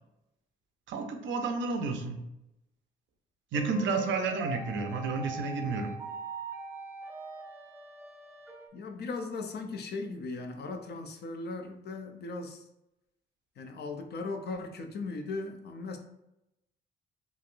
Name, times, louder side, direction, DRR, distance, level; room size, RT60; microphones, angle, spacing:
voice 1, 0.9-2.2 3.5-5.9, right 4 dB, 70° right, 5 dB, 0.6 m, -31 dB
sound 1, 3.5-8.7, right 3 dB, 15° right, 0.4 m, -42 dB
voice 2, 8.7-12.6 13.6-16.0, left 3 dB, 55° left, 5 dB, 0.6 m, -38 dB
3.2 x 2.4 x 2.5 m, 0.87 s
cardioid pair, 90°, 20 cm